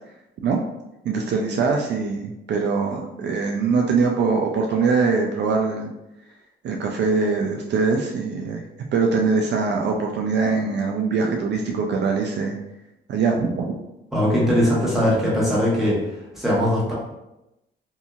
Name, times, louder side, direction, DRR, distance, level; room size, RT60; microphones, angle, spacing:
voice 1, 1.0-5.9 6.6-8.6 8.9-12.6 13.1-13.8, right 4 dB, 60° right, 1 dB, 0.4 m, -22 dB
voice 2, 14.1-16.0 16.3-16.9, equal, ahead, -8 dB, 1.3 m, -20 dB
2.7 x 2.7 x 2.4 m, 0.91 s
cardioid pair, 90°, 20 cm